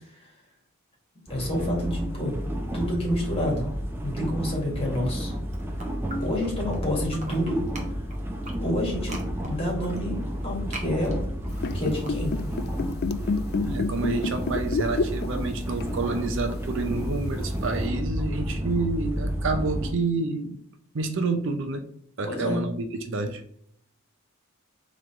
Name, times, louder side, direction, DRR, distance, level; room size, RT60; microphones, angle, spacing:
voice 1, 1.3-2.3 2.7-3.6 4.0-5.3 6.2-7.6 8.6-9.2 9.4-11.2 11.7-12.3 22.2-22.6, left 1 dB, 30° left, -2 dB, 1.9 m, -28 dB
sound 1, 1.3-19.9, equal, 10° right, 0.6 m, -31 dB
sound 2, 5.2-6.8 7.1-12.7, right 1 dB, 35° right, 0.9 m, -43 dB
sound 3, 11.5-15.5 15.8-16.0 16.9-17.0, left 4 dB, 50° left, 0.3 m, -28 dB
voice 2, 13.6-20.6 20.9-21.9 22.2-23.4, right 3 dB, 60° right, 7 dB, 0.6 m, -29 dB
3.9 x 3.1 x 4.4 m, 0.67 s
head